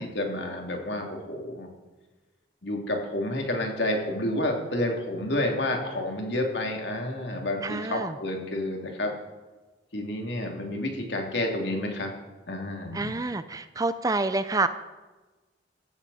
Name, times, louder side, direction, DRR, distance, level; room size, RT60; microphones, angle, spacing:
voice 1, 0.0-1.7 2.6-9.1 9.9-12.1 12.5-13.1, left 1 dB, 65° left, 1 dB, 3.0 m, -30 dB
voice 2, 7.6-8.2 12.9-14.7, right 3 dB, 20° right, 12 dB, 0.5 m, -28 dB
15.5 x 14.0 x 4.2 m, 1.2 s
head